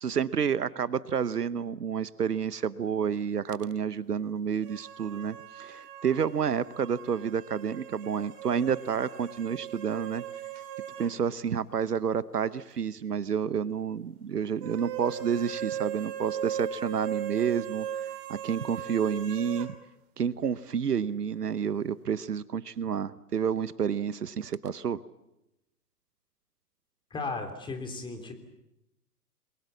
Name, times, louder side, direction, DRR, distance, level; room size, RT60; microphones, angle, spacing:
voice 1, 0.0-10.2 11.0-17.9 18.3-19.7 20.2-25.0, right 7 dB, 75° right, 18 dB, 1.0 m, -30 dB
sound 1, 4.6-11.2 11.5-11.6 14.6-19.7, right 10 dB, 30° right, 2.6 m, -38 dB
voice 2, 27.1-28.3, left 3 dB, 10° left, 5 dB, 3.3 m, -35 dB
29.0 x 22.5 x 7.2 m, 0.91 s
figure-of-eight pair, 120°, 47 cm